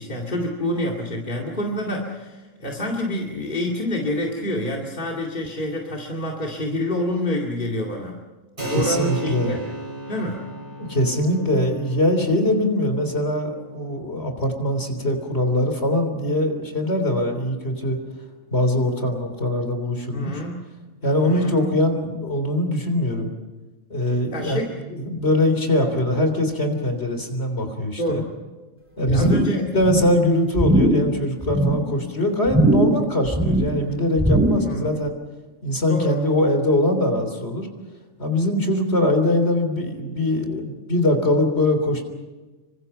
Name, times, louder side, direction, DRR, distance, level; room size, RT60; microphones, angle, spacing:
voice 1, 0.0-8.2 8.6-9.6 10.1-10.4 20.1-20.6 21.1-21.5 24.3-24.8 25.8-26.0 28.0-28.3 29.1-29.7 34.6-34.8 35.9-36.2, left 1 dB, 40° left, -1 dB, 2.5 m, -27 dB
Keyboard (musical), 8.6-18.8, right 2 dB, 40° right, 6.1 m, -37 dB
voice 2, 8.7-9.6 10.8-18.0 18.5-20.3 21.0-23.3 23.9-28.2 29.0-29.4 29.7-35.1 35.6-37.7 38.2-42.0, left 1 dB, 55° left, 6 dB, 3.8 m, -22 dB
sound 1, 29.1-29.6 29.8-30.2 30.6-31.1 31.4-31.9 32.5-33.0 33.3-33.8 34.2-34.7 35.1-35.2, right 1 dB, 10° right, 2.5 m, -20 dB
27.0 x 25.0 x 5.6 m, 1.2 s
omnidirectional pair, 1.3 m